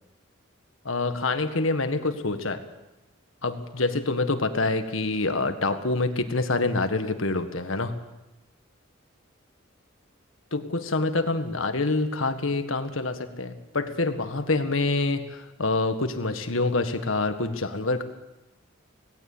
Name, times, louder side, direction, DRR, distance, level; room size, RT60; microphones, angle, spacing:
voice 1, 0.8-2.6 3.4-8.0 10.5-18.0, left 3 dB, 80° left, 8 dB, 1.7 m, -26 dB
18.5 x 17.0 x 8.6 m, 0.99 s
head